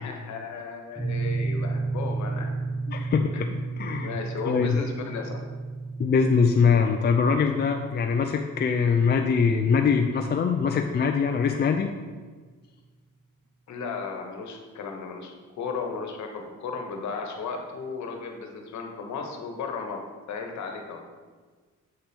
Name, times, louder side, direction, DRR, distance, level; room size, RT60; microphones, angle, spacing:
voice 1, 0.0-2.5 3.3-3.5 4.0-5.4 13.7-20.0 20.3-21.0, left 4 dB, 70° left, 3 dB, 1.3 m, -35 dB
sound 1, 1.0-11.1, right 3 dB, 5° right, 2.1 m, -33 dB
voice 2, 2.9-3.5 3.8-4.1 4.4-4.8 6.0-11.9, left 5 dB, 35° left, 4 dB, 0.5 m, -23 dB
7.6 x 4.3 x 5.3 m, 1.4 s
cardioid pair, 90°, 30 cm